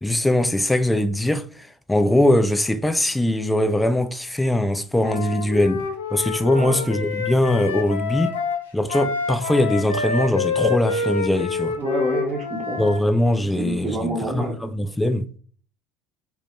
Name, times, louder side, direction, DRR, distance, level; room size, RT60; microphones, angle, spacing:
voice 1, 0.0-5.8 6.1-8.3 8.7-11.8 12.8-15.2, left 1 dB, 10° left, 0.3 m, -21 dB
Wind instrument woodwind instrument, 5.0-13.0, left 5 dB, 85° left, 0.4 m, -27 dB
voice 2, 11.8-12.8 13.4-14.5, right 2 dB, 35° right, 0.6 m, -28 dB
2.2 x 2.1 x 2.9 m
hypercardioid pair, 70°, 0 cm